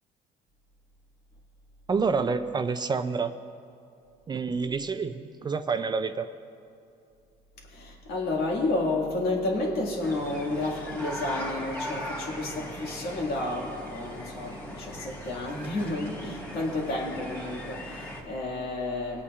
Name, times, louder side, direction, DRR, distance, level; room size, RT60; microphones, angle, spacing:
voice 1, 1.9-3.3 4.3-6.3, right 5 dB, 25° right, 10 dB, 0.4 m, -28 dB
voice 2, 7.7-19.2, left 2 dB, 70° left, -1 dB, 2.0 m, -31 dB
sound 1, 10.0-18.2, equal, 10° left, 1.8 m, -39 dB
23.5 x 8.4 x 2.4 m, 2.5 s
cardioid pair, 110°, 17 cm